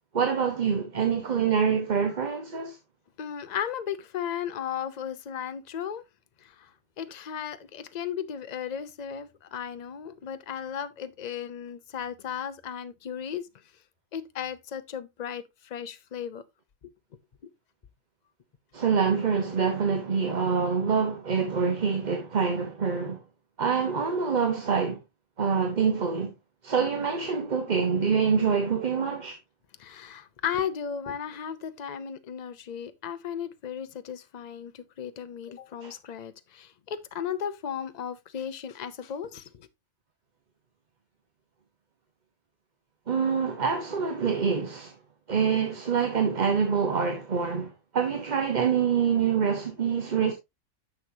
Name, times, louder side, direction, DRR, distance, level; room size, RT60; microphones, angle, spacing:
voice 1, 0.1-2.8 18.7-23.2 23.6-25.0 25.4-26.3 26.6-29.4 35.8-35.9 43.1-44.9 45.3-50.3, right 6 dB, 35° right, 1.0 m, -26 dB
voice 2, 3.2-6.0 6.4-6.7 7.0-13.5 14.1-16.4 29.8-39.7, left 8 dB, 45° left, 0.6 m, -35 dB
9.9 x 6.4 x 2.7 m
omnidirectional pair, 1.4 m